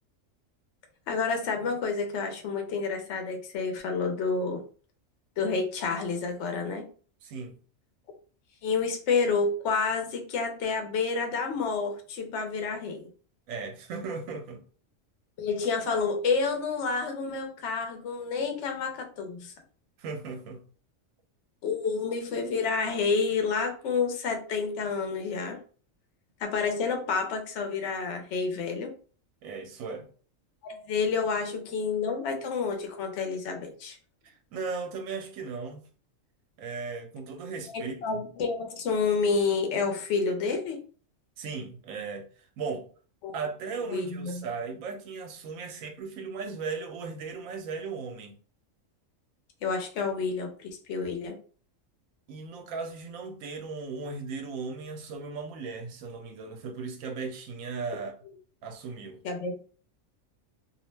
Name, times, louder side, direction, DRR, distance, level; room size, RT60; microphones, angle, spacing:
voice 1, 1.1-4.6 5.4-6.8 8.6-13.1 15.4-19.5 21.6-25.6 26.4-28.9 30.6-34.0 37.7-40.8 43.2-43.3 43.9-44.4 49.6-51.4 59.2-59.6, left 4 dB, 70° left, 0.9 m, -29 dB
voice 2, 7.2-7.6 13.5-14.6 20.0-20.6 29.4-30.1 34.2-35.8 36.6-38.2 41.4-42.3 42.6-42.8 43.3-48.3 52.3-58.2 58.6-59.2, right 4 dB, 85° right, 1.0 m, -37 dB
2.5 x 2.0 x 3.1 m
omnidirectional pair, 1.4 m